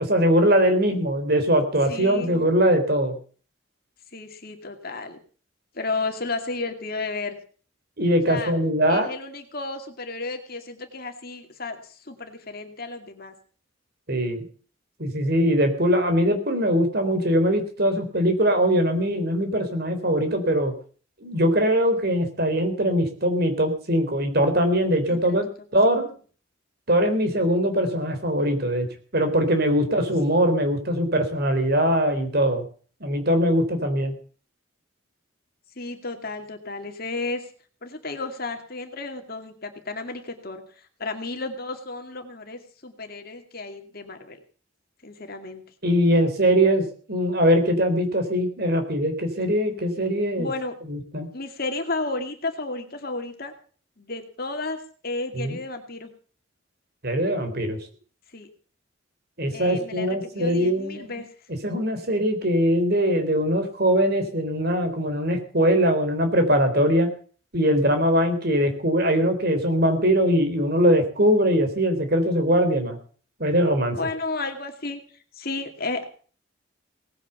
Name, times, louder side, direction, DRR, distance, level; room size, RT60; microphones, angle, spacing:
voice 1, 0.0-3.2 8.0-9.1 14.1-14.4 15.0-20.7 21.2-26.1 26.9-28.9 29.1-32.6 33.0-34.1 45.8-50.5 50.9-51.3 55.4-55.6 57.0-57.8 59.4-61.2 61.6-67.1 67.5-73.0 73.4-74.0, equal, 50° right, 7 dB, 3.6 m, -21 dB
voice 2, 1.9-2.4 4.1-5.2 5.7-7.4 8.3-8.5 8.9-13.3 25.1-25.4 29.8-30.1 35.8-37.4 37.8-44.4 45.0-45.6 50.4-50.7 51.3-53.5 54.0-56.1 58.3-58.5 59.5-61.3 73.9-75.0 75.3-76.1, left 3 dB, 50° left, 5 dB, 2.3 m, -33 dB
18.5 x 9.2 x 6.9 m, 0.42 s
head